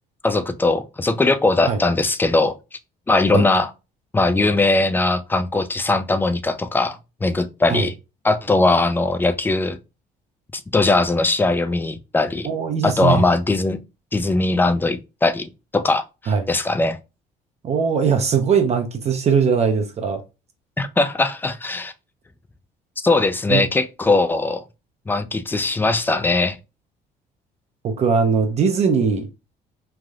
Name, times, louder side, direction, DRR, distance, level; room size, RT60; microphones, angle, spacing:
voice 1, 0.2-2.6 3.1-3.7 4.1-7.9 8.2-9.8 10.7-12.5 12.8-13.8 14.1-17.0 20.8-21.9 23.0-24.6 25.1-26.6, left 2 dB, 10° left, 0.3 m, -20 dB
voice 2, 12.4-13.2 16.3-16.5 17.6-20.2 23.5-23.6 27.8-29.3, right 6 dB, 40° right, 0.5 m, -20 dB
3.3 x 2.5 x 2.3 m
cardioid pair, 110°, 17 cm